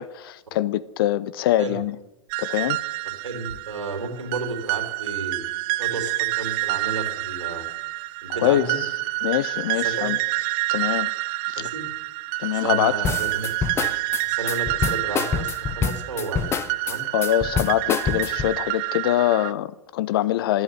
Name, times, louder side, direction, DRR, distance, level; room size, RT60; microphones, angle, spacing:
voice 1, 0.0-2.0 2.4-2.8 8.4-8.7 9.2-10.2 10.7-11.1 11.6-11.7 12.4-12.9 17.1-20.6, left 13 dB, 50° left, 0.7 m, -23 dB
sound 1, 2.3-19.5, right 20 dB, 35° right, 0.4 m, -28 dB
voice 2, 3.0-5.4 5.8-7.6 8.2-8.8 9.8-10.1 11.6-11.8 12.6-13.5 13.7-13.9 14.2-16.5 16.8-17.0, right 3 dB, 70° right, 3.3 m, -32 dB
sound 2, 13.0-18.6, left 6 dB, 15° left, 0.6 m, -26 dB
11.5 x 8.3 x 9.3 m
figure-of-eight pair, 100°, 16 cm